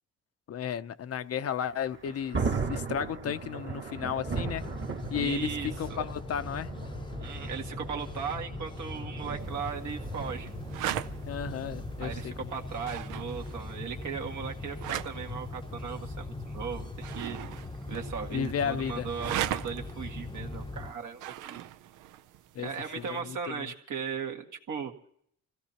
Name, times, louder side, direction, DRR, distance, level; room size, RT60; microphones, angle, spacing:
voice 1, 0.5-4.7 5.1-6.7 11.3-12.3 18.3-19.1 22.5-22.7 23.0-23.7, left 8 dB, 55° left, 0.7 m, -33 dB
Thunder, 1.7-12.5, right 4 dB, 40° right, 1.6 m, -38 dB
sound 1, 4.2-20.9, left 2 dB, 15° left, 0.7 m, -40 dB
voice 2, 5.1-6.0 7.2-10.5 12.0-17.4 17.9-21.7 22.6-24.9, right 6 dB, 75° right, 2.0 m, -37 dB
sound 2, 9.4-23.2, right 12 dB, 90° right, 0.6 m, -40 dB
26.0 x 16.0 x 2.9 m
cardioid pair, 90°, 30 cm